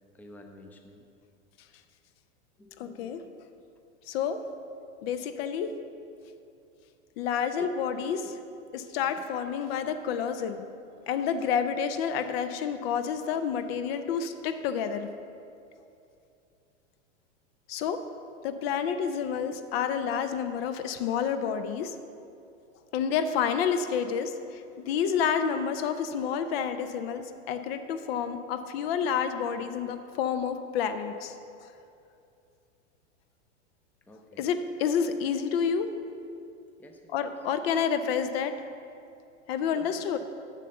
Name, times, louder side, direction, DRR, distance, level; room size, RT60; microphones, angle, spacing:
voice 1, 0.1-1.1 2.6-3.3 7.6-7.7 8.2-8.4 9.2-9.3 34.1-34.5 36.8-37.3 37.7-37.8 39.7-40.2, left 2 dB, 5° left, 3 dB, 0.6 m, -50 dB
voice 2, 2.8-3.2 4.1-4.4 5.0-5.7 7.2-8.2 8.7-10.6 11.1-15.1 17.7-18.0 18.4-21.9 22.9-31.3 31.6-31.7 34.4-35.9 37.1-38.5 39.5-40.2, left 7 dB, 50° left, 9 dB, 0.6 m, -29 dB
7.4 x 6.6 x 6.6 m, 2.6 s
hypercardioid pair, 110°, 37 cm